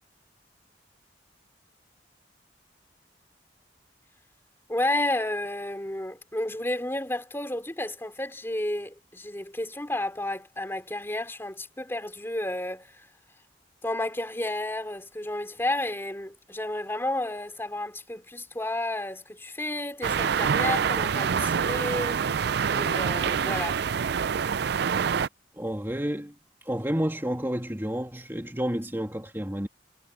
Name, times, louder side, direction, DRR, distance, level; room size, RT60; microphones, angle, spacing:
voice 1, 4.7-13.1 13.8-22.2 22.7-23.8, left 1 dB, 15° left, 2.9 m, -31 dB
sound 1, 20.0-25.3, right 7 dB, 60° right, 0.4 m, -26 dB
voice 2, 25.5-26.3 26.6-29.7, equal, 15° right, 2.2 m, -30 dB
head